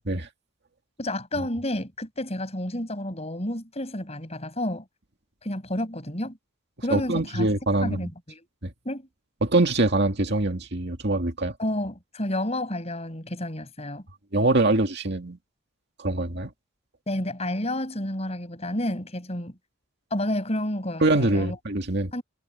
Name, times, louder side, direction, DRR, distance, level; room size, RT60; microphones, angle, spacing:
voice 1, 1.0-4.8 5.4-6.4 6.8-7.5 7.8-8.5 8.8-9.1 11.6-14.0 17.1-19.6 20.1-21.6 22.1-22.2, left 1 dB, 30° left, 5.8 m, -30 dB
voice 2, 6.9-8.1 8.6-8.7 9.4-11.6 14.3-15.4 16.0-16.5 21.0-22.1, right 2 dB, 55° right, 2.2 m, -24 dB
head